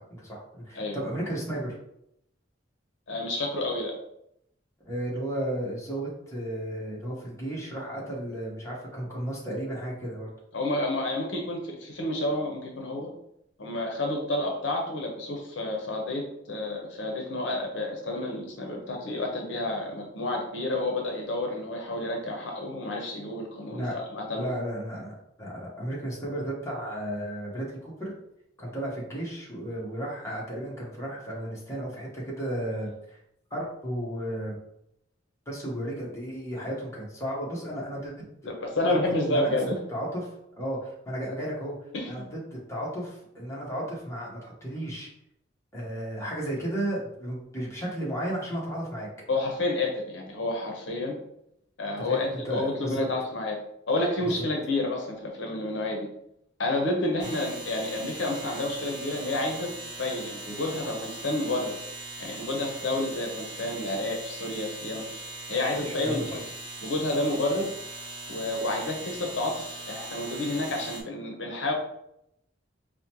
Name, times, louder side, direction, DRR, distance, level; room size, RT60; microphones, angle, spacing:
voice 1, 0.2-1.7 4.9-10.3 23.7-24.0 24.3-28.1 28.6-33.2 33.5-34.6 35.5-38.3 38.9-39.0 39.3-39.5 39.9-40.2 40.6-41.8 42.1-45.1 45.7-49.1 52.0-53.1 54.2-54.3 57.2-57.3 65.8-66.3, right 1 dB, 15° left, -5 dB, 1.0 m, -34 dB
voice 2, 3.1-3.9 10.5-13.1 13.6-24.5 38.5-39.7 41.9-42.3 49.3-51.2 51.8-53.6 53.9-56.0 56.6-59.7 60.0-61.8 62.2-65.1 65.5-66.4 66.8-67.7 68.3-71.7, left 2 dB, 70° left, 1 dB, 0.7 m, -30 dB
sound 1, 57.2-71.0, right 2 dB, 25° right, 0.8 m, -40 dB
4.9 x 2.1 x 2.9 m, 0.78 s
head